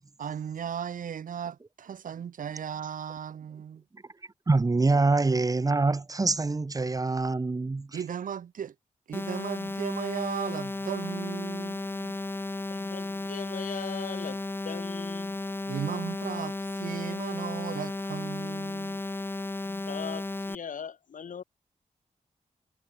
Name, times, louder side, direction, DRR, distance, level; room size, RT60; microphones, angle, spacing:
voice 1, 0.2-3.8 7.9-8.7 9.1-12.2 15.7-19.0, right 8 dB, 80° right, 0.9 m, -36 dB
voice 2, 4.5-8.0, right 3 dB, 25° right, 1.0 m, -25 dB
sound 1, 9.1-20.5, left 2 dB, 15° left, 0.8 m, -34 dB
voice 3, 12.7-15.4 19.6-21.4, left 7 dB, 75° left, 1.9 m, -40 dB
wide cardioid pair, 110°, 14 cm